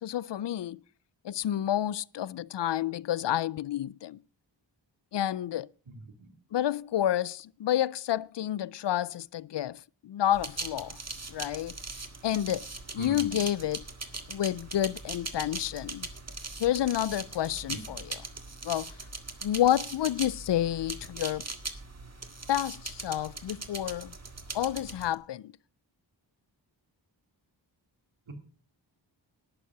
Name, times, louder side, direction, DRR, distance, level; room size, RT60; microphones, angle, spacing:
voice 1, 0.0-0.8 1.2-4.2 5.1-5.7 6.5-11.0 11.3-11.7 12.2-12.7 12.9-13.8 14.3-16.1 16.6-18.2 18.6-18.9 19.4-21.5 22.5-24.1 24.5-25.5, left 12 dB, 65° left, 0.5 m, -29 dB
sound 1, 10.3-25.1, right 3 dB, 35° right, 1.8 m, -40 dB
voice 2, 13.0-13.4 17.7-17.8 28.3-28.4, right 2 dB, 80° right, 2.6 m, -41 dB
12.0 x 8.4 x 5.9 m
cardioid pair, 60°, 46 cm